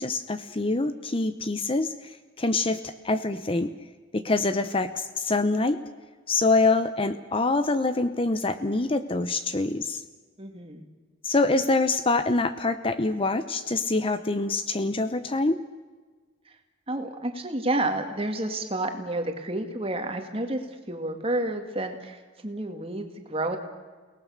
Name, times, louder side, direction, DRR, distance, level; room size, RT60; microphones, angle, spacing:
voice 1, 0.0-3.7 4.1-5.8 6.3-10.0 11.2-15.6, left 3 dB, 25° left, 11 dB, 0.7 m, -25 dB
voice 2, 10.4-10.8 16.5-16.6 16.9-23.6, right 1 dB, 30° right, 5 dB, 2.2 m, -30 dB
29.5 x 18.5 x 6.5 m, 1.4 s
head